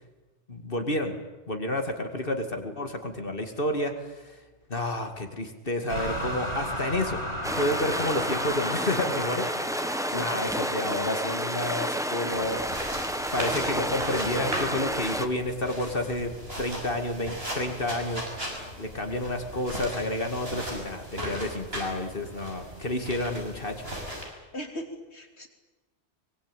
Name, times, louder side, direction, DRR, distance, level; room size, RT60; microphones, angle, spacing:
voice 1, 0.5-1.1 1.5-4.4 4.7-7.2 7.5-12.9 13.3-16.3 16.6-23.9, left 1 dB, 55° left, 6 dB, 2.6 m, -30 dB
sound 1, 5.9-11.9, equal, 90° left, 7.4 m, -35 dB
sound 2, 7.4-15.3, equal, 5° right, 1.3 m, -30 dB
voice 2, 10.1-10.6 24.5-25.5, left 1 dB, 70° left, 4 dB, 3.4 m, -38 dB
sound 3, 12.3-24.2, equal, 60° right, 7.0 m, -37 dB
24.0 x 22.0 x 9.1 m, 1.2 s
omnidirectional pair, 1.1 m